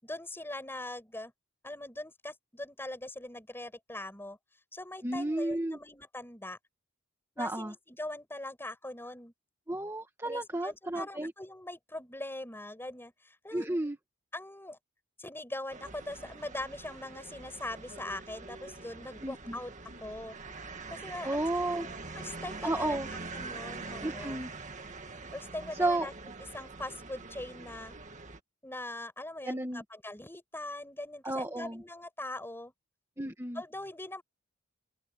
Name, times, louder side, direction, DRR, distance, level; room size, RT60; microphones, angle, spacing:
voice 1, 0.0-1.3 1.6-4.4 4.7-6.6 7.4-9.3 10.2-13.7 14.3-14.8 15.2-19.7 20.0-20.4 20.9-21.5 21.8-21.9 22.1-24.4 25.3-26.1 26.5-28.0 28.6-32.7 33.5-34.2, left 1 dB, 10° left, 6.0 m, -41 dB
voice 2, 5.0-5.8 7.4-7.7 9.7-11.3 13.5-14.0 19.2-19.6 21.2-21.9 22.6-23.1 24.0-24.5 25.8-26.1 29.4-29.8 31.2-31.8 33.2-33.6, right 1 dB, 15° right, 1.8 m, -32 dB
sound 1, 15.7-28.4, right 3 dB, 35° right, 2.0 m, -44 dB
head